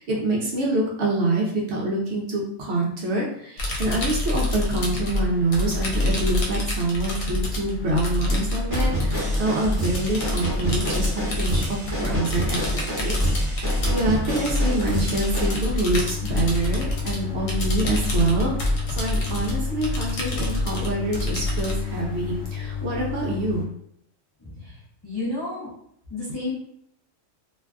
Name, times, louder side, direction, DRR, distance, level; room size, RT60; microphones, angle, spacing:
voice 1, 0.0-11.1 11.4-12.6 13.0-23.7, right 2 dB, 65° right, -2 dB, 0.7 m, -26 dB
sound 1, 3.6-22.5, left 1 dB, 80° left, 1.0 m, -27 dB
sound 2, 8.7-15.6, right 1 dB, 15° right, 0.8 m, -30 dB
sound 3, 15.9-23.7, left 8 dB, 40° right, 0.9 m, -32 dB
voice 2, 24.4-25.7 26.1-26.5, left 2 dB, 40° left, -7 dB, 0.3 m, -32 dB
2.5 x 2.3 x 2.2 m, 0.70 s
omnidirectional pair, 1.4 m